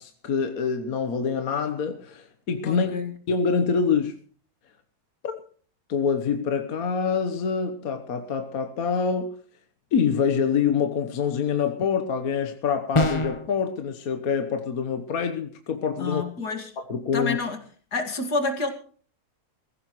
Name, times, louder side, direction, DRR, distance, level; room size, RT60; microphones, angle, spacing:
voice 1, 0.0-2.9 3.3-4.2 5.2-5.4 5.9-9.4 9.9-16.2 16.9-17.4, left 6 dB, 65° left, 1.5 m, -26 dB
voice 2, 2.6-3.1 16.0-16.7 17.1-17.6 17.9-18.7, left 3 dB, 80° left, 2.7 m, -28 dB
sound 1, 12.9-13.5, left 2 dB, 25° left, 0.8 m, -23 dB
22.0 x 15.0 x 3.1 m
omnidirectional pair, 1.7 m